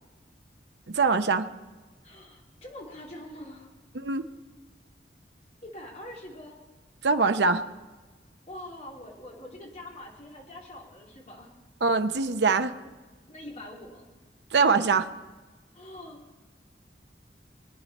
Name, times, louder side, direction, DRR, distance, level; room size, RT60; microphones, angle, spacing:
voice 1, 0.9-1.5 3.9-4.2 7.0-7.6 11.8-12.7 14.5-15.1, right 4 dB, 70° right, 8 dB, 0.7 m, -23 dB
voice 2, 2.0-3.7 5.6-6.6 8.5-11.5 13.3-14.1 15.7-16.3, left 1 dB, 40° left, -2 dB, 3.0 m, -44 dB
22.0 x 9.8 x 4.2 m, 1.3 s
head